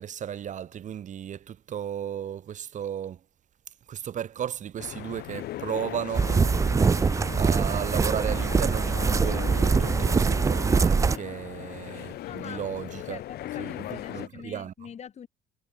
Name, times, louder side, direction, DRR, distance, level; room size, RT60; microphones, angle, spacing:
voice 1, 0.0-3.2 3.9-7.1 7.3-13.2 13.6-14.7, right 9 dB, 45° right, 1.2 m, -35 dB
sound 1, 4.8-14.3, left 14 dB, 70° left, 1.3 m, -38 dB
sound 2, 6.1-11.2, right 5 dB, 20° right, 0.4 m, -23 dB
voice 2, 12.2-12.6 13.1-15.3, left 8 dB, 40° left, 1.3 m, -43 dB
cardioid pair, 110°, 17 cm